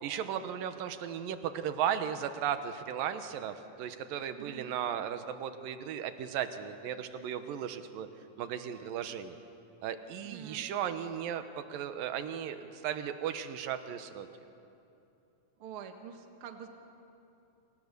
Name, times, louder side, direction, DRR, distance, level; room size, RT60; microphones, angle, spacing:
voice 1, 0.0-8.1 8.4-9.4 9.8-14.3, right 9 dB, 75° right, 9 dB, 2.9 m, -36 dB
voice 2, 4.4-4.7 10.2-10.7 15.6-16.7, right 8 dB, 45° right, 5 dB, 2.1 m, -46 dB
28.5 x 28.0 x 6.9 m, 2.8 s
omnidirectional pair, 4.1 m